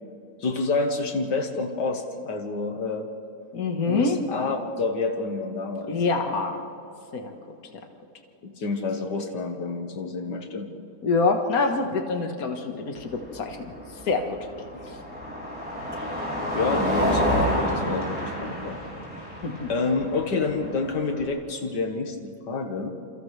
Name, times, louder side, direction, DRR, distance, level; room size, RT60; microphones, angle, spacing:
voice 1, 0.4-3.1 3.9-5.9 8.4-10.7 16.0-16.1 16.5-18.8 19.7-22.9, left 3 dB, 85° left, 4 dB, 2.2 m, -28 dB
voice 2, 3.5-4.2 5.9-6.6 7.1-7.3 11.0-13.6 14.1-14.4 19.4-19.7, left 4 dB, 60° left, 4 dB, 2.0 m, -25 dB
Car passing by, 13.0-21.2, equal, 5° right, 6.2 m, -29 dB
29.0 x 28.0 x 3.4 m, 2.9 s
omnidirectional pair, 1.8 m